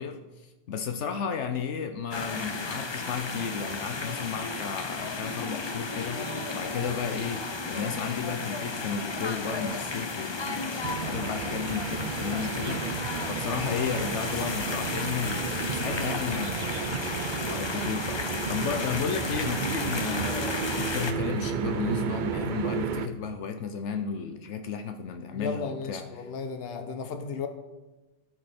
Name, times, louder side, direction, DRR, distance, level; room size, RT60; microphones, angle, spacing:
voice 1, 0.0-7.4 7.7-16.9 17.4-26.3, left 6 dB, 80° left, 6 dB, 1.0 m, -33 dB
sound 1, 2.1-21.1, left 3 dB, 30° left, 0.5 m, -33 dB
sound 2, 10.8-23.1, right 7 dB, 55° right, 0.6 m, -33 dB
voice 2, 25.3-27.5, left 5 dB, 60° left, 7 dB, 1.1 m, -34 dB
14.5 x 5.4 x 4.3 m, 1.1 s
omnidirectional pair, 1.2 m